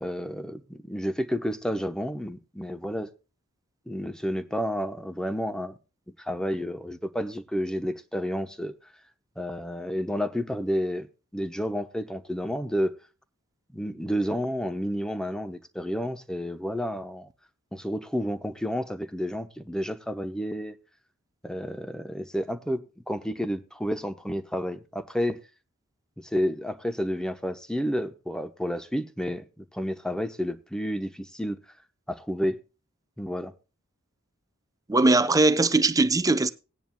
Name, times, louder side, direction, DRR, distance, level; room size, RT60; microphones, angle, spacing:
voice 1, 0.0-3.1 3.9-5.7 6.2-8.7 9.4-11.1 11.3-13.0 13.7-17.3 17.7-20.7 21.4-25.4 26.2-31.6 32.1-32.6 33.2-33.5, equal, 5° left, 0.9 m, -30 dB
voice 2, 34.9-36.5, right 2 dB, 15° right, 0.6 m, -20 dB
18.5 x 10.0 x 2.2 m
head